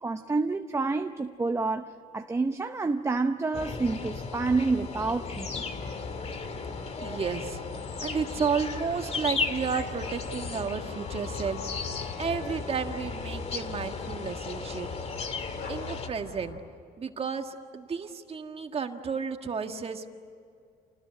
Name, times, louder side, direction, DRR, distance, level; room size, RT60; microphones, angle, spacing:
voice 1, 0.0-5.6, right 3 dB, 15° right, 6 dB, 0.9 m, -28 dB
sound 1, 3.5-16.1, left 4 dB, 40° left, 2.0 m, -36 dB
sound 2, 5.5-16.6, left 4 dB, 65° left, 4.0 m, -42 dB
voice 2, 7.0-7.6 8.0-11.6 12.2-14.9 15.7-16.6 17.0-20.1, right 6 dB, 35° right, 5 dB, 1.8 m, -32 dB
28.5 x 20.0 x 9.7 m, 2.4 s
cardioid pair, 110°, 17 cm